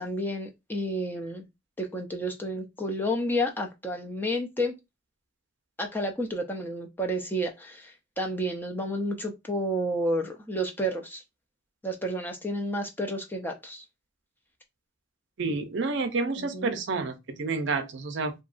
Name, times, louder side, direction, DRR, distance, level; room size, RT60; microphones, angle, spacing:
voice 1, 0.0-1.5 1.8-4.7 5.8-11.2 11.8-13.8 16.4-16.7, equal, 10° left, 0.3 m, -31 dB
voice 2, 15.4-18.3, right 3 dB, 60° right, 0.5 m, -29 dB
2.7 x 2.3 x 2.4 m
head